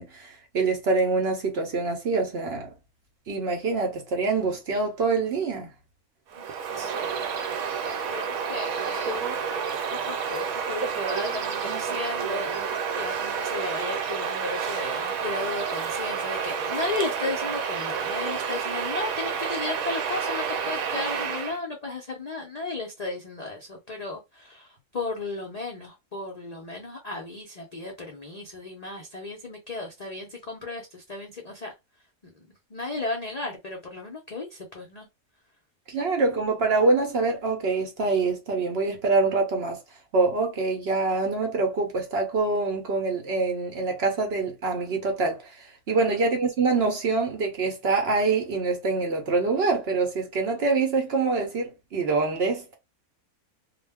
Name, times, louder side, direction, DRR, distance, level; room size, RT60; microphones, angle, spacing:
voice 1, 0.0-2.7 3.3-5.7 35.9-39.8 40.1-45.4 45.9-52.7, right 3 dB, 55° right, 0.8 m, -25 dB
Bird vocalization bird call bird song, 6.3-21.6, right 6 dB, 80° right, 1.0 m, -30 dB
voice 2, 6.8-9.3 9.9-12.6 13.0-31.7 32.2-35.1 45.9-46.2, left 3 dB, 55° left, 0.4 m, -35 dB
2.3 x 2.1 x 3.4 m
omnidirectional pair, 1.5 m